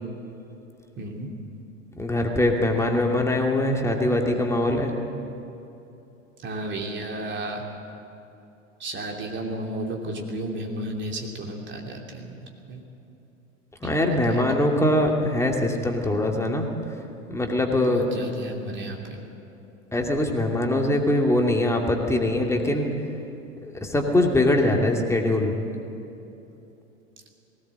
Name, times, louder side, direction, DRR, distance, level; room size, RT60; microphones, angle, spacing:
voice 1, 1.0-1.3 6.4-7.6 8.8-12.3 12.7-12.8 13.9-14.4 17.8-19.0, right 1 dB, 30° right, 1 dB, 3.0 m, -33 dB
voice 2, 2.0-4.9 13.8-16.7 17.3-18.1 19.9-22.9 23.6-25.6, left 1 dB, 5° left, 1 dB, 2.5 m, -22 dB
19.0 x 17.5 x 7.7 m, 2.9 s
figure-of-eight pair, 90°, 40 cm